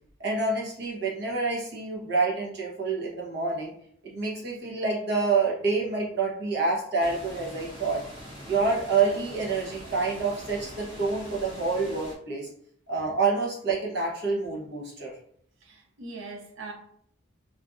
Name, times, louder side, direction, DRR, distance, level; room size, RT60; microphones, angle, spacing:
voice 1, 0.2-3.7 4.0-8.0 8.5-12.5 12.9-15.1, right 4 dB, 55° right, 0.9 m, -27 dB
sound 1, 7.0-12.2, equal, 25° right, 1.0 m, -43 dB
voice 2, 15.6-16.7, right 3 dB, 80° right, 0.7 m, -41 dB
3.2 x 2.6 x 2.4 m
head